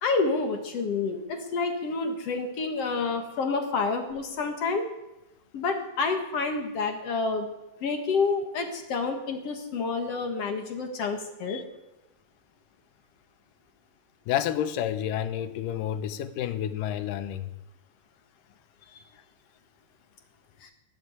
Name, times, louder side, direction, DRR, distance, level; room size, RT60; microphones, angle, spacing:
voice 1, 0.0-4.9 5.5-7.5 7.8-11.6 20.6-20.7, left 4 dB, 55° left, 5 dB, 2.4 m, -28 dB
voice 2, 14.3-17.5, left 10 dB, 80° left, 11 dB, 2.5 m, -30 dB
20.0 x 7.9 x 8.1 m, 0.97 s
omnidirectional pair, 3.9 m